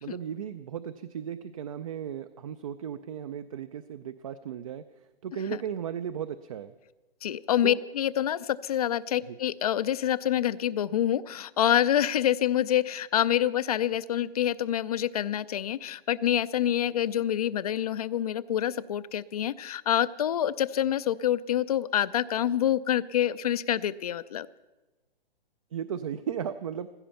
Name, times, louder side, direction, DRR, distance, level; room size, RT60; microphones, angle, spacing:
voice 1, 0.0-4.8 5.2-6.7 7.6-7.8 9.3-9.4 25.7-26.9, right 8 dB, 35° right, 11 dB, 0.4 m, -35 dB
voice 2, 7.2-24.5, left 11 dB, 40° left, 17 dB, 0.4 m, -27 dB
15.5 x 14.0 x 5.7 m, 1.1 s
hypercardioid pair, 150°, 30 cm